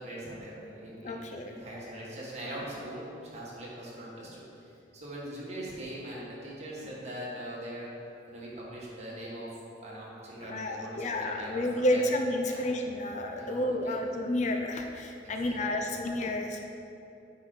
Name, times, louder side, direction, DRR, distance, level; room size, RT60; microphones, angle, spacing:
voice 1, 0.0-7.9 8.3-9.5 9.8-12.1 12.4-12.7 13.3-13.6 13.8-14.0 15.2-15.8, right 1 dB, 40° right, -6 dB, 1.6 m, -42 dB
voice 2, 1.0-1.5 10.4-16.6, left 1 dB, 40° left, 3 dB, 0.5 m, -30 dB
8.5 x 4.9 x 4.0 m, 2.7 s
head